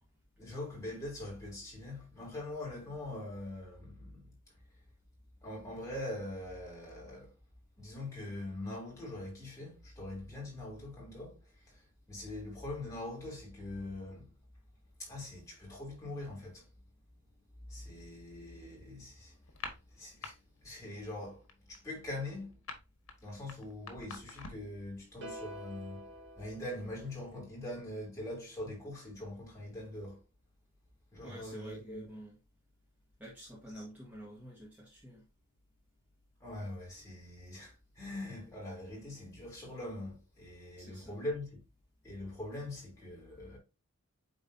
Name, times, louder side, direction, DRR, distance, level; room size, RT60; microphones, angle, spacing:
voice 1, 0.4-4.3 5.4-7.3 7.8-11.4 11.6-14.3 15.0-16.7 17.7-19.4 19.9-22.6 23.2-26.0 26.4-30.2 31.1-32.1 33.8-33.9 36.4-41.6 42.0-43.6, left 1 dB, 15° left, 3.1 m, -43 dB
sound 1, 19.5-20.3 20.6-20.9 21.2-24.8, left 4 dB, 80° left, 1.5 m, -46 dB
sound 2, 25.2-27.5, equal, 60° right, 1.8 m, -48 dB
voice 2, 31.2-32.4 33.2-35.2 40.8-41.2, equal, 10° right, 1.8 m, -49 dB
9.1 x 3.9 x 2.7 m
head